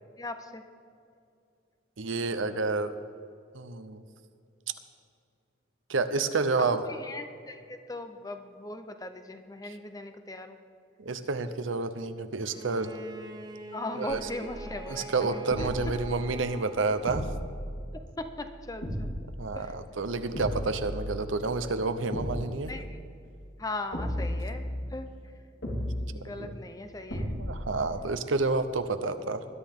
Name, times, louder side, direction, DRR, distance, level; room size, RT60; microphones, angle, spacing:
voice 1, 0.2-0.6 6.8-10.6 13.7-15.7 18.2-19.1 19.6-19.7 22.7-23.0 23.6-24.6 24.9-25.1 26.1-27.3, left 1 dB, 20° left, 8 dB, 0.7 m, -39 dB
voice 2, 2.0-2.9 3.5-4.0 5.9-6.8 9.7-9.8 11.0-12.9 14.0-14.3 14.9-17.3 19.4-22.7 26.4-26.6 27.2-29.4, right 3 dB, 85° right, 9 dB, 0.8 m, -29 dB
Bowed string instrument, 12.4-17.6, right 2 dB, 20° right, 0.9 m, -45 dB
sound 1, 14.1-14.9 15.5-16.1 17.1-18.1 18.8-19.4 20.3-21.4 22.1-22.7 23.9-25.0 25.6-26.3 27.1-27.7, equal, 80° left, 3.5 m, -35 dB
20.5 x 11.5 x 3.7 m, 2.4 s
head